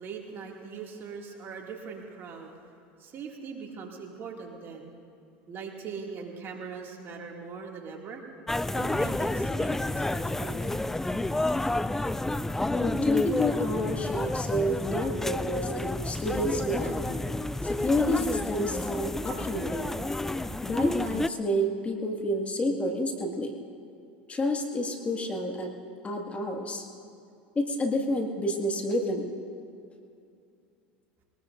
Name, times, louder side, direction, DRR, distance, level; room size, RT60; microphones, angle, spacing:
voice 1, 0.0-2.6 3.0-4.9 5.5-8.2 8.7-10.9, right 5 dB, 45° right, 0 dB, 2.4 m, -41 dB
sound 1, 8.5-21.3, left 2 dB, 5° left, 0.4 m, -30 dB
voice 2, 12.7-17.0 17.6-20.0 20.6-23.5 24.3-25.7 26.0-26.8 27.6-29.3, left 1 dB, 25° left, 2 dB, 2.1 m, -29 dB
22.0 x 19.5 x 2.6 m, 2.5 s
hypercardioid pair, 90°, 5 cm